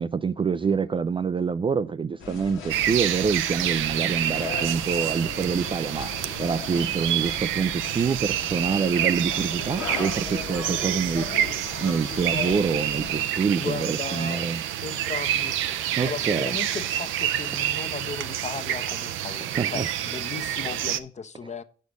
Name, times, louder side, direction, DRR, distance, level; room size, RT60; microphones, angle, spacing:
voice 1, 0.0-6.1 6.4-11.3 11.8-14.6 16.0-16.6 19.4-19.9, right 5 dB, 25° right, 0.3 m, -26 dB
sound 1, 2.2-13.3, left 6 dB, 85° left, 1.4 m, -38 dB
sound 2, 2.7-21.0, right 11 dB, 85° right, 0.5 m, -28 dB
voice 2, 13.6-14.5 14.8-21.6, left 5 dB, 35° left, 0.8 m, -36 dB
Domestic sounds home sounds, 14.8-19.2, left 1 dB, 5° left, 0.9 m, -49 dB
7.2 x 6.4 x 5.0 m
cardioid pair, 85°, 20 cm